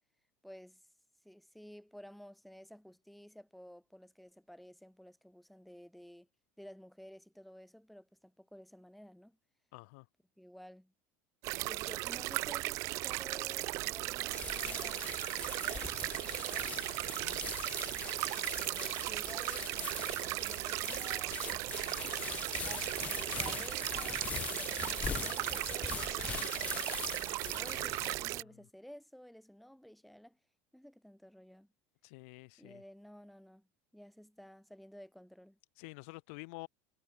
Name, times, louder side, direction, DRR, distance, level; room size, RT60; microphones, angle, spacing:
voice 1, 0.4-0.8 1.2-6.3 6.6-9.4 10.4-10.9 11.6-15.1 15.4-16.0 16.4-16.8 18.3-22.0 22.6-30.4 30.7-31.7 32.6-33.7 33.9-35.6, equal, ahead, 1.6 m, -54 dB
voice 2, 9.7-10.1 17.1-17.4 27.7-28.6 32.0-32.8 35.8-36.7, left 30 dB, 65° left, 0.7 m, -50 dB
sound 1, 11.4-28.4, right 21 dB, 40° right, 0.4 m, -37 dB
sound 2, 14.3-28.2, left 7 dB, 20° left, 0.7 m, -42 dB
cardioid pair, 175°, 8 cm